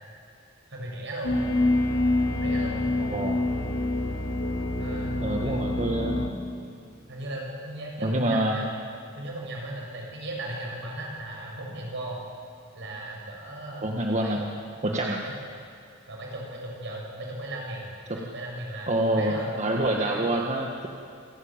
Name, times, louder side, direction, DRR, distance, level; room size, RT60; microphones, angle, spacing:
voice 1, 0.7-1.3 2.3-2.8 4.8-5.6 7.1-8.8 9.1-12.2 12.7-13.9 14.2-14.4 14.8-15.0 15.2-15.3 16.1-19.6 20.0-20.4, right 1 dB, 65° right, -1 dB, 7.3 m, -37 dB
sound 1, 1.2-6.3, left 2 dB, 75° left, 3.4 m, -26 dB
voice 2, 5.2-6.2 8.0-8.6 13.8-14.6 14.8-15.2 18.1-18.2 18.9-20.9, right 1 dB, 35° right, 0 dB, 1.6 m, -26 dB
27.0 x 17.0 x 9.0 m, 2.5 s
head